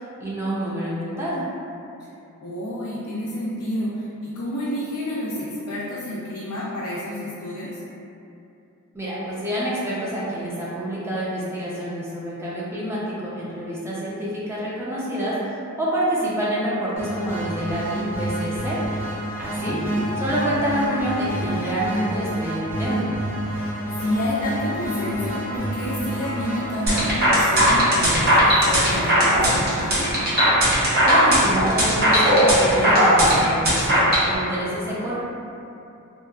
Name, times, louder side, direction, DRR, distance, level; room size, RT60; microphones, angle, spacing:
voice 1, 0.2-1.5 8.9-18.8 19.4-19.8 20.2-23.1 31.1-35.1, right 1 dB, 10° right, -8 dB, 0.4 m, -27 dB
voice 2, 2.4-7.8 19.7-20.1 24.0-30.1, left 1 dB, 80° left, -7 dB, 0.4 m, -29 dB
sound 1, 16.9-27.1, right 1 dB, 75° right, 1.4 m, -28 dB
sound 2, 26.9-34.3, equal, 45° right, 0.7 m, -17 dB
2.7 x 2.3 x 2.3 m, 2.7 s
head